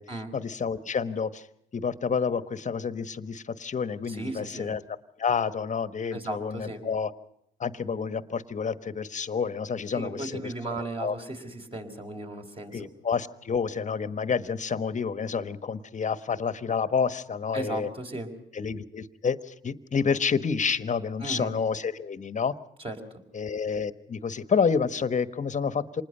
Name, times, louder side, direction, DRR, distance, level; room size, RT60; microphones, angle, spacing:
voice 1, 0.3-1.5 1.7-4.8 5.2-7.1 7.6-10.5 11.0-11.1 12.7-17.9 18.5-22.5 23.3-26.0, left 6 dB, 40° left, 13 dB, 1.3 m, -29 dB
voice 2, 4.1-4.7 6.1-6.8 9.9-12.9 17.5-18.3 21.2-21.5 22.8-23.0, right 2 dB, 25° right, 3 dB, 4.7 m, -36 dB
26.5 x 20.0 x 5.5 m, 0.78 s
cardioid pair, 90°, 20 cm